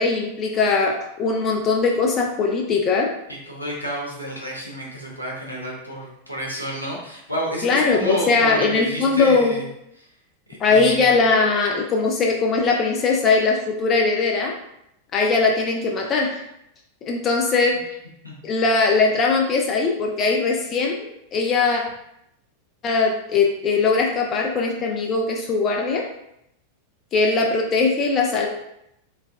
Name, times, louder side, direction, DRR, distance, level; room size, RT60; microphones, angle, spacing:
voice 1, 0.0-3.1 7.6-9.5 10.6-14.5 15.1-16.4 17.0-17.8 18.4-21.8 22.8-26.1 27.1-28.5, left 4 dB, 30° left, 0 dB, 0.6 m, -20 dB
voice 2, 3.5-9.6 10.5-11.1 18.2-18.4, equal, 90° left, -3 dB, 1.0 m, -30 dB
4.6 x 2.2 x 3.4 m, 0.79 s
figure-of-eight pair, 90°, 0 cm